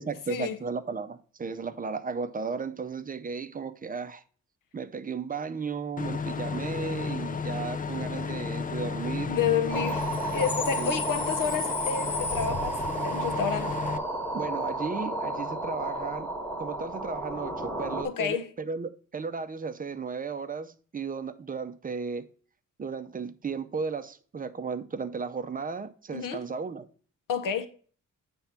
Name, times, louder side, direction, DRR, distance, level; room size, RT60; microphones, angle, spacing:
voice 1, 0.0-4.2 4.7-9.4 10.8-11.0 14.3-16.3 16.6-22.3 22.8-26.9, right 5 dB, 25° right, 0.5 m, -35 dB
Bus / Idling / Screech, 6.0-14.0, left 5 dB, 25° left, 0.4 m, -33 dB
voice 2, 9.3-10.0 10.3-12.8 13.0-13.8 18.0-18.5 26.1-26.4 27.3-27.7, left 7 dB, 85° left, 0.9 m, -29 dB
sound 1, 9.7-18.0, right 2 dB, 5° left, 1.2 m, -32 dB
8.6 x 3.5 x 5.7 m
wide cardioid pair, 130°, 32 cm